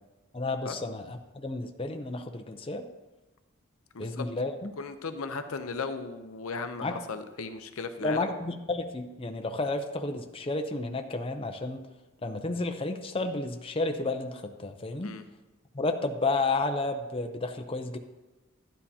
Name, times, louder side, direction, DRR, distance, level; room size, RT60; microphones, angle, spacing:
voice 1, 0.3-2.8 4.0-4.7 6.8-7.0 8.0-11.8 12.2-15.2 15.7-18.0, left 2 dB, 25° left, 5 dB, 0.6 m, -31 dB
voice 2, 3.9-4.3 4.8-8.3 15.0-15.2, left 4 dB, 75° left, 8 dB, 0.7 m, -36 dB
12.0 x 10.0 x 2.8 m, 1.1 s
head